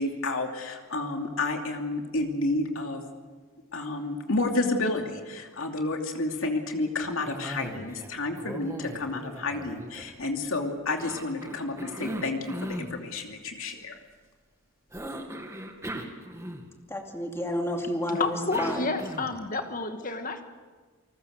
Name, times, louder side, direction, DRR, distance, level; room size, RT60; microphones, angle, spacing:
voice 1, 0.0-3.0 3.7-14.0, left 2 dB, 75° left, 3 dB, 2.7 m, -30 dB
Cough, 7.2-8.1 8.4-10.4 11.0-12.9 14.9-16.9 18.1-19.5, right 1 dB, 15° right, 2.2 m, -38 dB
voice 2, 16.9-18.9, left 1 dB, 15° left, 2 dB, 2.5 m, -30 dB
voice 3, 18.2-20.4, left 3 dB, 40° left, 6 dB, 1.9 m, -30 dB
29.0 x 20.0 x 6.6 m, 1.4 s
head